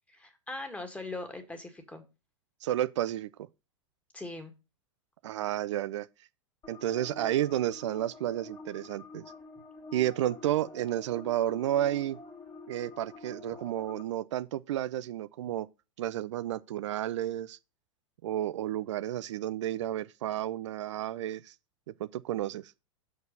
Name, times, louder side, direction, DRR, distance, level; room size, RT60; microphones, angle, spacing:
voice 1, 0.1-2.0 4.1-4.5, left 2 dB, 10° left, 2.0 m, -40 dB
voice 2, 2.6-3.3 5.2-6.1 6.7-9.2 9.9-12.2 12.7-15.7 16.0-17.6 18.2-21.5 22.0-22.7, right 12 dB, 70° right, 0.5 m, -31 dB
sound 1, 6.6-14.0, left 3 dB, 25° left, 2.3 m, -48 dB
6.3 x 4.8 x 6.5 m
hypercardioid pair, 105°, 16 cm